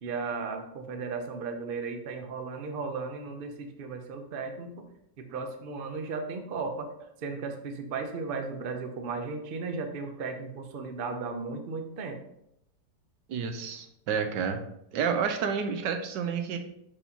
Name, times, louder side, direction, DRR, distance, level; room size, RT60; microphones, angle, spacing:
voice 1, 0.0-4.9 5.2-12.2, right 4 dB, 55° right, 5 dB, 0.6 m, -35 dB
voice 2, 13.3-14.6 14.9-16.6, right 6 dB, 85° right, 6 dB, 1.4 m, -30 dB
6.4 x 5.3 x 2.9 m, 0.77 s
omnidirectional pair, 1.9 m